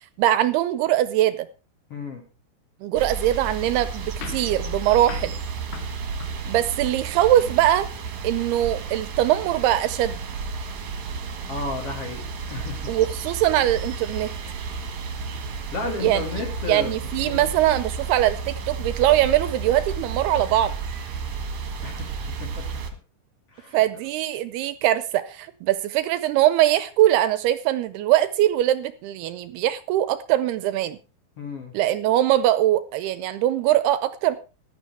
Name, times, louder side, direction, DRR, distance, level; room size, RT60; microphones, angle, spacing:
voice 1, 0.2-1.5 2.8-5.3 6.5-7.9 8.2-10.2 12.9-14.3 16.0-16.2 16.7-20.7 23.7-31.0 31.7-34.4, right 13 dB, 80° right, 2.6 m, -22 dB
voice 2, 1.9-2.2 11.5-12.9 15.7-17.0 17.2-17.5 21.8-22.1 22.4-22.7 23.5-23.8 31.4-31.8, left 3 dB, 40° left, 2.8 m, -33 dB
sound 1, 2.9-22.9, right 5 dB, 55° right, 2.6 m, -32 dB
sound 2, 4.2-7.1, left 9 dB, 80° left, 3.4 m, -43 dB
15.5 x 12.0 x 3.4 m
omnidirectional pair, 4.8 m